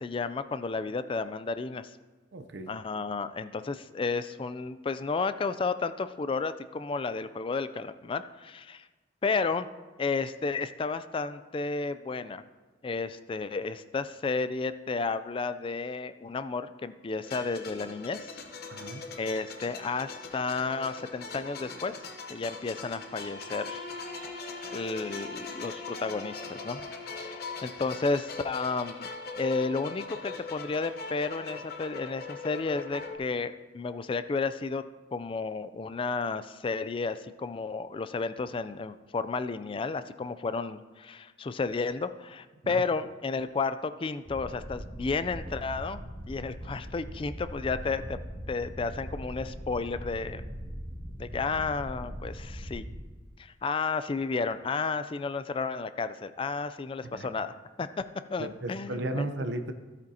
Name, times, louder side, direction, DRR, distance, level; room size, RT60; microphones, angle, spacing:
voice 1, 0.0-1.9 2.7-8.9 9.2-9.7 10.0-12.4 12.8-18.3 19.2-22.0 22.3-23.8 24.7-26.8 27.2-29.1 29.4-34.8 35.1-48.2 48.5-50.5 51.2-52.8 53.4-57.9 58.3-59.3, left 4 dB, 30° left, 12 dB, 0.3 m, -32 dB
voice 2, 2.3-2.7 18.7-19.0 42.6-42.8 57.0-57.3 58.4-59.7, right 2 dB, 70° right, 8 dB, 0.6 m, -35 dB
sound 1, 17.2-33.2, left 4 dB, 55° left, 0.9 m, -41 dB
Bowed string instrument, 23.0-27.9, left 2 dB, 70° left, 2.4 m, -44 dB
sound 2, 44.3-52.9, equal, 25° right, 3.1 m, -40 dB
13.0 x 8.7 x 2.8 m, 1.3 s
head